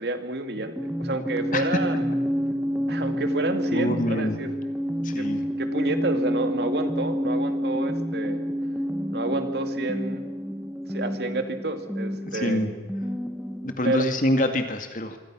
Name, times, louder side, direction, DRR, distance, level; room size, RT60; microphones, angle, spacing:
voice 1, 0.0-2.1 2.9-4.5 5.2-5.3 5.6-8.4 9.1-10.3 10.9-12.6 13.8-14.0, right 2 dB, 65° right, 7 dB, 2.4 m, -29 dB
sound 1, 0.6-13.9, equal, ahead, 1.1 m, -29 dB
voice 2, 3.7-4.4 5.0-5.4 12.4-12.7 13.6-15.2, left 1 dB, 45° left, 6 dB, 2.3 m, -25 dB
26.0 x 25.5 x 6.3 m, 1.3 s
head